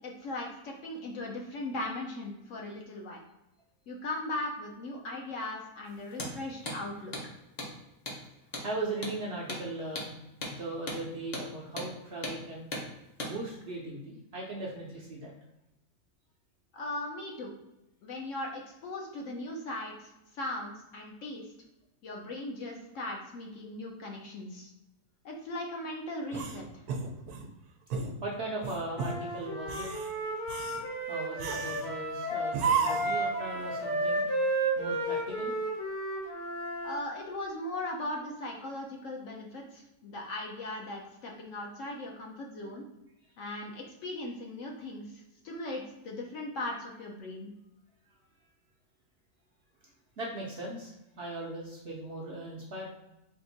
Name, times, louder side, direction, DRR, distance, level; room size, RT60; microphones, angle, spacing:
voice 1, 0.0-3.2 3.9-7.1 16.7-17.5 18.0-21.5 22.0-24.7 25.2-26.8 36.8-42.8 43.4-47.5, left 1 dB, 65° left, 0 dB, 1.0 m, -38 dB
Hammer, 6.1-6.3 6.7-6.8 7.1-7.3 7.6-7.7 8.1-8.2 8.5-8.7 9.0-9.2 9.5-9.6 10.0-10.1 10.4-10.6 10.9-11.0 11.3-11.5 11.8-11.9 12.2-12.4 12.7-12.9 13.2-13.3, left 1 dB, 35° left, 0.7 m, -37 dB
voice 2, 8.6-10.1 10.4-12.7 13.2-15.3 28.2-29.9 31.1-34.2 34.8-35.5 50.2-52.8, right 2 dB, 55° right, -2 dB, 0.7 m, -38 dB
sound 1, 26.3-27.5 27.9-28.2 28.6-29.2 29.6-30.1 30.5-30.8 31.4-31.9 32.5-33.2, right 5 dB, 90° right, 1.1 m, -32 dB
Wind instrument woodwind instrument, 28.9-36.9, right 1 dB, 85° left, 1.8 m, -32 dB
3.6 x 2.5 x 3.9 m, 0.91 s
omnidirectional pair, 1.6 m